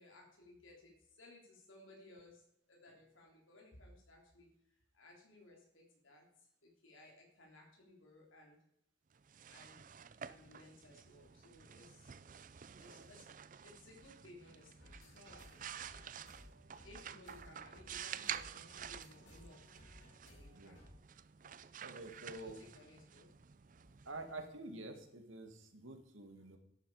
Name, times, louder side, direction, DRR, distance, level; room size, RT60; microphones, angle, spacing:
voice 1, 0.0-8.6 9.5-9.8 10.2-12.2 12.8-13.3 13.6-16.1 16.8-19.8 20.3-20.9 22.3-23.3 26.4-26.5, left 2 dB, 85° left, -1 dB, 3.5 m, -60 dB
sound 1, 9.1-24.8, right 9 dB, 40° right, 0.4 m, -50 dB
sound 2, 14.8-20.9, left 1 dB, 65° left, 5.6 m, -60 dB
voice 2, 21.8-22.6 24.1-26.6, right 2 dB, 85° right, 6 dB, 2.1 m, -48 dB
13.5 x 11.5 x 4.9 m, 0.77 s
head